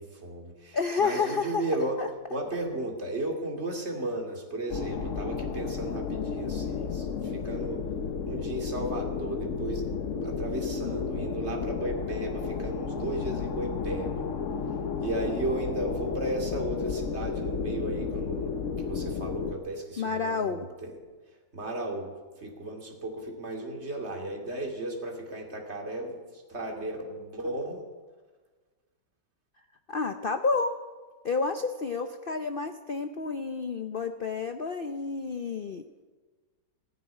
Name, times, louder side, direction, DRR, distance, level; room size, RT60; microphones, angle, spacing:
voice 1, 0.0-2.0 2.3-7.8 8.3-9.9 10.2-14.3 15.0-18.5 18.8-20.9 21.5-27.9, right 1 dB, 35° right, 1 dB, 2.7 m, -35 dB
voice 2, 0.7-1.7 2.0-2.1 20.0-20.6 29.9-30.8 31.2-35.8, left 4 dB, 90° left, 7 dB, 0.4 m, -30 dB
sound 1, 4.7-19.5, left 5 dB, 50° left, 1.1 m, -32 dB
15.5 x 9.4 x 9.6 m, 1.4 s
omnidirectional pair, 1.9 m